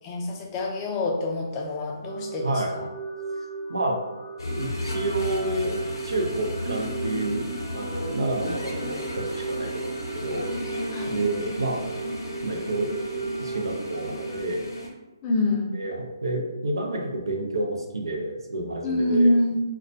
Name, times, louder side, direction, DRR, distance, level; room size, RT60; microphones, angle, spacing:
voice 1, 0.0-2.9 10.9-11.2 15.2-15.8 18.8-19.6, left 1 dB, 20° left, 0 dB, 0.4 m, -25 dB
sound 1, 2.0-14.4, right 4 dB, 50° right, 0.8 m, -36 dB
sound 2, 4.4-14.9, equal, 80° left, 0.6 m, -34 dB
voice 2, 4.6-5.8 6.0-7.5 7.7-10.5 11.1-11.8 12.4-14.7 15.7-19.3, right 2 dB, 90° right, 0 dB, 0.5 m, -29 dB
2.2 x 2.1 x 2.6 m, 1.1 s
hypercardioid pair, 150°, 2 cm